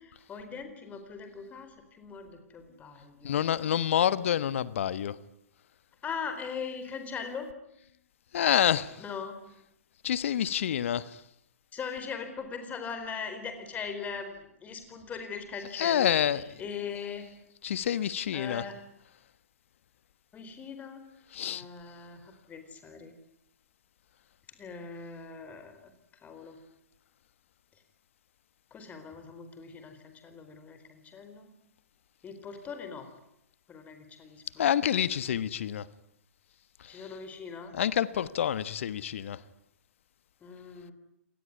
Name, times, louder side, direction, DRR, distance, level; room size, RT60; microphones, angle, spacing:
voice 1, 0.0-4.2 6.0-7.5 9.0-9.4 11.7-17.3 18.3-18.8 20.3-21.0 21.5-22.2 22.5-23.1 24.6-25.9 26.2-26.6 28.7-31.5 32.2-33.1 33.7-35.2 36.9-37.7 40.4-40.9, left 6 dB, 20° left, 4.4 m, -40 dB
voice 2, 3.2-5.1 8.3-9.0 10.0-11.0 15.7-16.4 17.6-18.6 21.3-21.6 34.6-35.8 37.7-39.4, left 10 dB, 60° left, 1.3 m, -27 dB
27.5 x 19.5 x 9.7 m
figure-of-eight pair, 115°, 8 cm